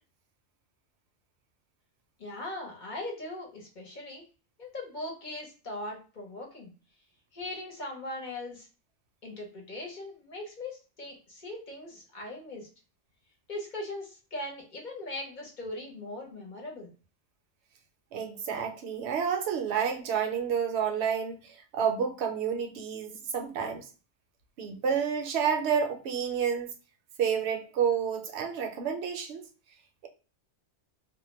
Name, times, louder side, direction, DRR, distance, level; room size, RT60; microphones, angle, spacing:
voice 1, 2.2-4.2 4.6-6.7 7.3-8.7 9.2-12.7 13.5-16.9, left 1 dB, 45° left, 0.8 m, -40 dB
voice 2, 18.1-21.4 21.7-23.9 24.6-26.7 27.2-29.4, right 7 dB, 75° right, 0.8 m, -29 dB
2.2 x 2.1 x 3.0 m
omnidirectional pair, 1.2 m